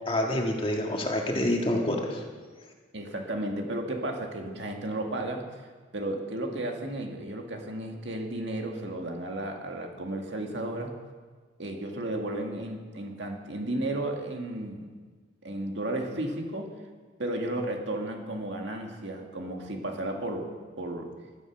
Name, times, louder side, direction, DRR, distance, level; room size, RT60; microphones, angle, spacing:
voice 1, 0.0-2.2, left 1 dB, 25° left, 1 dB, 1.7 m, -27 dB
voice 2, 2.9-5.5 5.9-10.9 11.6-14.9 15.4-16.7 17.2-20.5 20.8-21.1, right 1 dB, 65° right, 2 dB, 2.0 m, -33 dB
16.0 x 12.0 x 6.0 m, 1.5 s
head